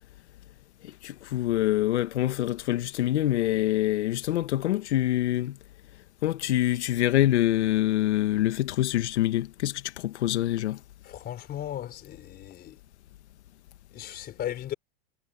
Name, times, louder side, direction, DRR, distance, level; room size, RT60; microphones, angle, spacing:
voice 1, 0.8-5.6 6.2-10.8, left 14 dB, 85° left, 1.4 m, -25 dB
voice 2, 11.0-12.8 13.9-14.7, left 11 dB, 30° left, 4.1 m, -36 dB
supercardioid pair, 145°, 33 cm